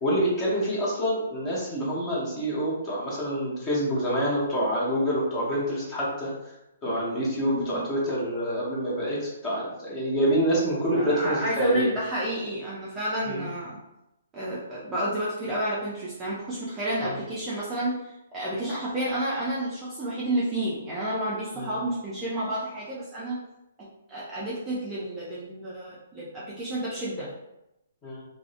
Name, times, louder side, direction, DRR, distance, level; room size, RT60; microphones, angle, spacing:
voice 1, 0.0-6.3 6.8-11.9 13.3-13.4 17.0-17.2 21.6-21.7 28.0-28.2, equal, 15° left, -6 dB, 0.8 m, -27 dB
voice 2, 7.5-7.9 10.9-13.8 14.3-23.4 23.8-27.3, right 1 dB, 10° right, -8 dB, 0.4 m, -30 dB
2.5 x 2.0 x 2.5 m, 0.90 s
hypercardioid pair, 160°, 0 cm